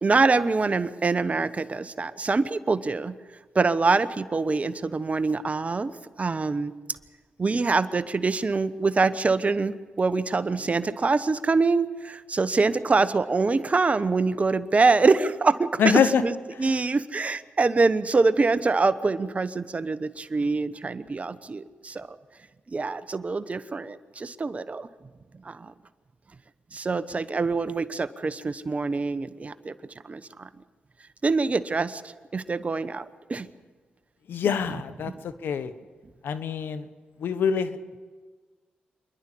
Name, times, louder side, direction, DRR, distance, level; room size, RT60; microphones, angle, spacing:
voice 1, 0.0-3.1 3.5-5.9 6.2-6.7 7.4-22.1 22.7-24.9 25.4-25.7 26.7-29.7 30.0-30.5 31.2-33.0 33.3-33.5 34.7-34.8 35.0-35.1, right 3 dB, 40° right, 14 dB, 1.0 m, -25 dB
voice 2, 15.8-16.2 16.6-16.8 34.3-35.7 36.2-36.9 37.2-38.0, left 7 dB, 75° left, 12 dB, 1.1 m, -25 dB
27.0 x 11.5 x 8.5 m, 1.5 s
supercardioid pair, 50°, 4 cm